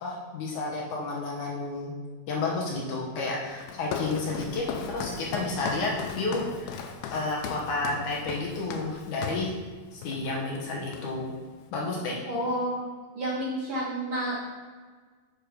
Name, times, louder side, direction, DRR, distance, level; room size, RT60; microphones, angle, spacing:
voice 1, 0.0-1.9 2.3-6.8 7.1-9.5 9.9-11.3 11.7-12.2, left 3 dB, 65° left, -2 dB, 2.4 m, -31 dB
Walk footsteps, 3.6-9.5 10.0-10.3 10.6-11.4, left 6 dB, 90° left, 2.6 m, -37 dB
voice 2, 12.3-12.9 13.1-14.4, equal, 55° right, -6 dB, 1.4 m, -30 dB
6.7 x 6.5 x 5.1 m, 1.5 s
omnidirectional pair, 4.2 m